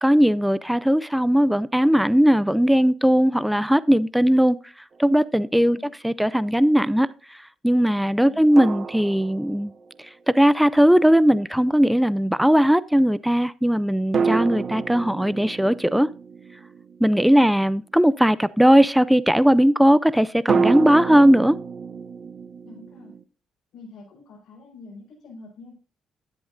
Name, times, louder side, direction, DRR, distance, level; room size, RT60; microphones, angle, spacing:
voice 1, 0.0-4.6 5.0-5.8 6.0-7.1 7.6-9.7 10.3-16.1 17.0-21.6, equal, 5° right, 0.4 m, -18 dB
sound 1, 4.9-5.1 8.6-10.1 14.1-17.8 20.5-23.2, right 5 dB, 45° right, 0.8 m, -28 dB
voice 2, 8.2-8.6 22.6-23.1 23.7-25.7, left 3 dB, 65° left, 4.9 m, -45 dB
11.5 x 10.0 x 2.6 m
cardioid pair, 90°, 0 cm